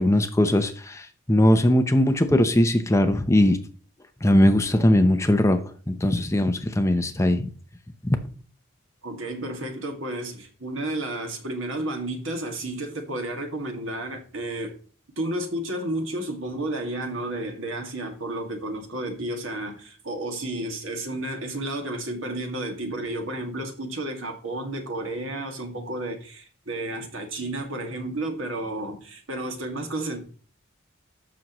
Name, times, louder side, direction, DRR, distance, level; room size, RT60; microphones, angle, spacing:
voice 1, 0.0-3.6 4.2-7.5 8.0-8.2, left 1 dB, 15° left, 0.7 m, -20 dB
voice 2, 9.0-14.8 15.2-30.2, right 1 dB, 75° right, 2.0 m, -32 dB
13.0 x 6.3 x 3.0 m
head